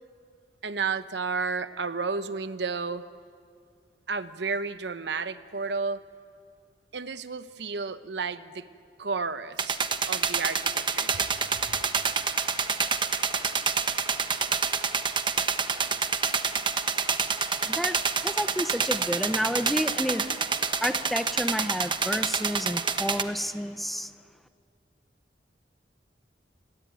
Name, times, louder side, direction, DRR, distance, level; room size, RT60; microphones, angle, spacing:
voice 1, 0.6-3.0 4.1-6.0 6.9-8.7 9.0-9.8 10.1-11.4 11.7-11.8, right 4 dB, 70° right, 12 dB, 1.0 m, -32 dB
sound 1, 9.6-23.2, right 5 dB, 30° right, 1.1 m, -28 dB
voice 2, 17.7-18.0 18.2-20.2 20.8-24.1, equal, ahead, 10 dB, 0.8 m, -30 dB
30.0 x 18.5 x 9.2 m, 2.2 s
head